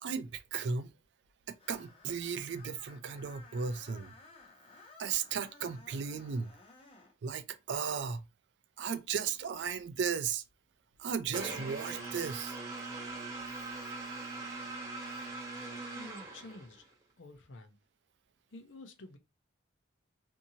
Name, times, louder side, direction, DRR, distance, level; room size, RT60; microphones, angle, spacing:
voice 1, 0.0-0.9 1.5-4.1 5.0-6.5 7.2-8.3 8.8-10.4 11.0-12.6, right 6 dB, 65° right, 0.4 m, -35 dB
Screech, 1.6-7.1, left 3 dB, 30° left, 0.7 m, -57 dB
sound 1, 11.3-16.9, right 3 dB, 15° right, 0.7 m, -41 dB
voice 2, 15.9-17.8 18.5-19.2, left 2 dB, 80° left, 0.6 m, -51 dB
2.7 x 2.7 x 2.7 m
head